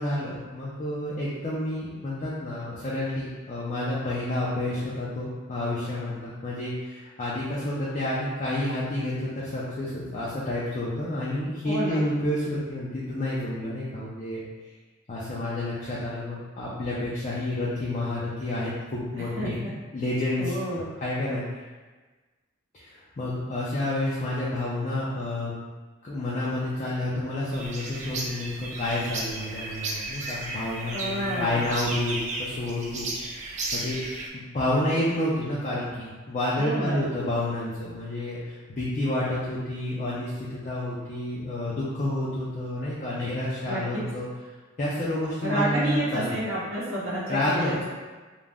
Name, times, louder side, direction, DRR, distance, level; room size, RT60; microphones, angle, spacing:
voice 1, 0.0-14.4 15.1-19.6 19.9-20.5 21.0-21.4 22.7-25.5 26.0-33.1 33.3-34.0 34.3-44.3 44.8-46.4 47.3-47.8, left 1 dB, 35° left, -7 dB, 0.4 m, -29 dB
voice 2, 11.6-12.0 19.4-19.7 20.4-20.9 30.9-31.6 36.5-37.1 43.6-44.0 45.4-48.0, right 1 dB, 90° right, -7 dB, 0.8 m, -30 dB
sound 1, 27.5-34.3, right 2 dB, 35° right, 0.3 m, -34 dB
2.4 x 2.0 x 3.3 m, 1.3 s
head